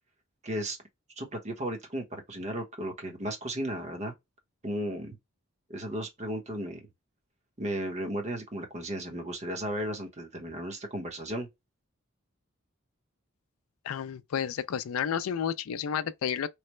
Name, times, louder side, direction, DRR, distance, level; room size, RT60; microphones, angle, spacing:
voice 1, 0.4-0.8 1.2-4.1 4.6-5.2 5.7-6.8 7.6-11.5, right 1 dB, 35° right, 0.9 m, -35 dB
voice 2, 13.8-16.5, left 8 dB, 80° left, 0.4 m, -31 dB
3.2 x 2.1 x 3.0 m
head